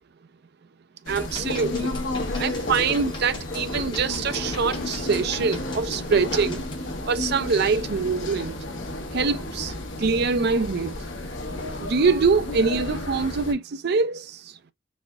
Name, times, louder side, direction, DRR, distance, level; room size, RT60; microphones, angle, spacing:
sound 1, 1.1-13.5, left 2 dB, 70° left, 1.1 m, -32 dB
voice 1, 1.1-2.0 2.4-6.6 7.0-8.5 9.1-11.0 11.8-14.4, right 5 dB, 55° right, 0.5 m, -24 dB
sound 2, 1.2-6.7, left 2 dB, 25° left, 1.2 m, -40 dB
4.2 x 3.4 x 2.4 m
head